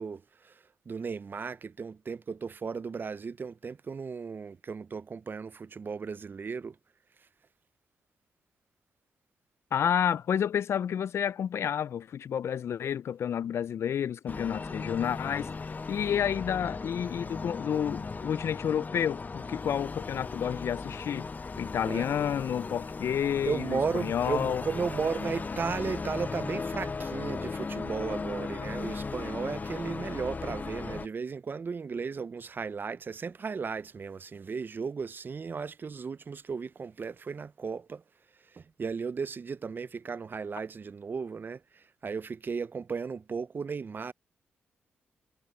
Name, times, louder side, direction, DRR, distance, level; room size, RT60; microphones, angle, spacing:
voice 1, 0.0-6.8 21.8-22.5 23.4-38.0 38.5-44.1, right 5 dB, 45° right, 0.6 m, -35 dB
voice 2, 9.7-15.5 15.9-21.3 21.6-24.6, left 9 dB, 65° left, 0.5 m, -30 dB
sound 1, 14.3-31.1, left 4 dB, 35° left, 0.8 m, -37 dB
supercardioid pair, 55°, 5 cm